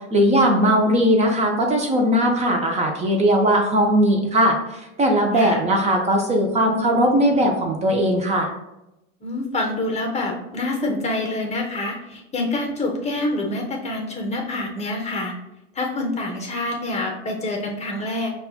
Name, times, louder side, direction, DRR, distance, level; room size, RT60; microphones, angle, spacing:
voice 1, 0.1-4.6 5.0-8.5, equal, 20° right, 2 dB, 0.5 m, -19 dB
voice 2, 9.2-15.3 15.7-18.3, left 2 dB, 15° left, 1 dB, 0.8 m, -26 dB
5.4 x 2.3 x 2.3 m, 0.91 s
hypercardioid pair, 105°, 38 cm